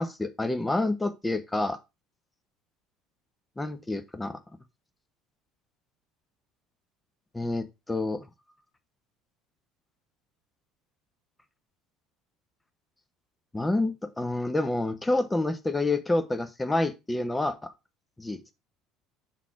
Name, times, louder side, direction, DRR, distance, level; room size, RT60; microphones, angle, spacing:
voice 1, 0.0-1.8 3.6-4.4 7.3-8.3 13.5-17.7 18.2-18.4, left 2 dB, 15° left, 9 dB, 0.9 m, -28 dB
6.1 x 4.0 x 4.7 m, 0.24 s
hypercardioid pair, 65°, 0 cm